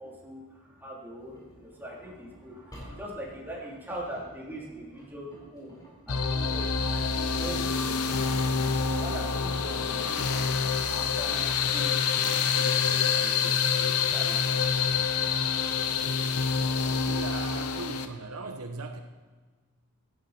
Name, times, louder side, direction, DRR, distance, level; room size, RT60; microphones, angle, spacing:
voice 1, 0.0-5.8 6.0-8.5 8.8-10.6 10.8-14.4, equal, 10° right, -4 dB, 3.5 m, -42 dB
Engine, 1.2-15.4, right 1 dB, 15° left, 4.6 m, -53 dB
sound 1, 6.1-18.1, left 6 dB, 80° left, 0.9 m, -27 dB
voice 2, 16.9-19.0, right 3 dB, 70° right, 6 dB, 1.0 m, -38 dB
16.5 x 11.0 x 4.4 m, 1.4 s
head